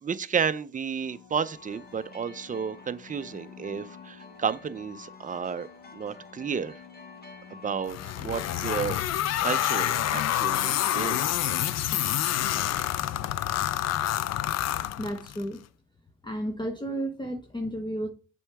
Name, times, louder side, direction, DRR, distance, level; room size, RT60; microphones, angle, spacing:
voice 1, 0.0-5.7 5.9-6.8 7.5-9.0 9.4-11.3, right 6 dB, 25° right, 0.6 m, -32 dB
sound 1, 0.9-9.5 14.8-14.9, left 8 dB, 90° left, 1.2 m, -52 dB
sound 2, 1.3-8.4, left 3 dB, 30° left, 1.8 m, -50 dB
sound 3, 7.9-15.4, left 12 dB, 60° left, 0.5 m, -27 dB
voice 2, 15.0-15.6 16.2-18.1, right 1 dB, 15° left, 1.0 m, -32 dB
7.0 x 4.6 x 3.5 m
cardioid pair, 90°, 30 cm